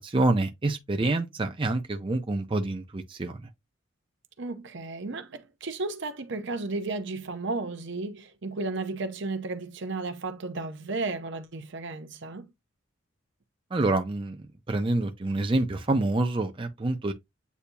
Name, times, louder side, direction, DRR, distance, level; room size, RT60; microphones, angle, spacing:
voice 1, 0.0-3.5 13.7-14.4 14.7-17.1, right 2 dB, 25° right, 0.5 m, -27 dB
voice 2, 4.4-12.5, right 3 dB, 60° right, 0.7 m, -34 dB
8.3 x 2.8 x 2.3 m
head